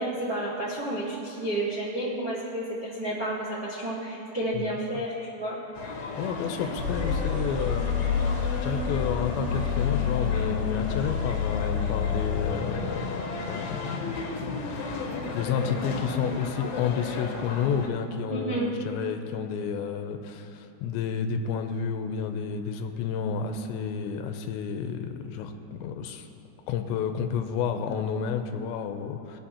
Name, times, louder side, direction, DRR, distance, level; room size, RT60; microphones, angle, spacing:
voice 1, 0.0-5.1 5.4-5.6 18.3-18.7, right 1 dB, 85° right, -9 dB, 0.9 m, -31 dB
voice 2, 4.5-5.0 6.2-7.9 8.6-26.3 26.7-29.4, left 7 dB, 90° left, 6 dB, 2.9 m, -31 dB
sound 1, 5.7-17.9, left 3 dB, 70° left, 2.6 m, -34 dB
sound 2, 6.8-12.5, left 7 dB, 15° right, 0.6 m, -28 dB
21.5 x 8.3 x 2.8 m, 2.8 s
omnidirectional pair, 5.1 m